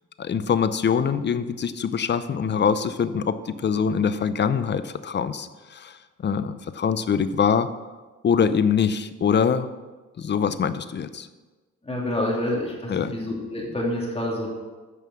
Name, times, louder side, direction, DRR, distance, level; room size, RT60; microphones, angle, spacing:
voice 1, 0.2-7.7 8.2-9.7 10.2-11.3 12.9-13.1, left 7 dB, 35° left, 13 dB, 0.6 m, -24 dB
voice 2, 11.8-14.5, left 1 dB, 20° left, -3 dB, 2.7 m, -27 dB
9.3 x 5.6 x 6.3 m, 1.3 s
cardioid pair, 90°, 30 cm